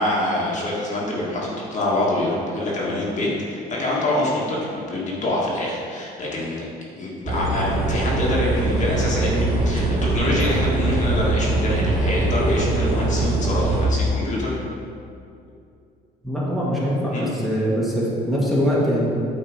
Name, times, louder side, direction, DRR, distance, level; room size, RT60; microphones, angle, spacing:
voice 1, 0.0-6.7 7.0-14.6 17.1-17.3, left 1 dB, 45° left, -5 dB, 1.8 m, -25 dB
sound 1, 7.3-13.9, right 2 dB, 30° right, 1.4 m, -22 dB
voice 2, 16.2-19.1, equal, ahead, -7 dB, 1.7 m, -22 dB
8.7 x 3.9 x 5.0 m, 2.5 s
cardioid pair, 110°, 17 cm